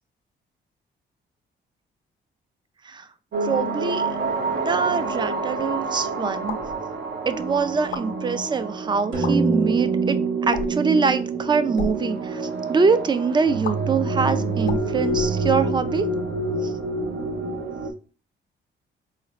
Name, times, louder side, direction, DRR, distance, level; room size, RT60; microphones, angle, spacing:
sound 1, 3.3-17.9, right 2 dB, 65° right, 0.7 m, -28 dB
voice 1, 3.4-4.0 4.5-6.6 7.3-10.2 10.5-12.4 12.7-16.1, right 5 dB, 25° right, 12 dB, 0.3 m, -24 dB
sound 2, 6.4-6.8 7.8-8.1 9.1-9.3 10.5-10.9 11.6-11.9 13.6-13.7 14.6-15.8, left 6 dB, 80° left, 0.6 m, -33 dB
sound 3, 9.1-13.8, right 5 dB, 85° right, 1.1 m, -27 dB
4.1 x 2.5 x 3.0 m, 0.37 s
cardioid pair, 105°, 20 cm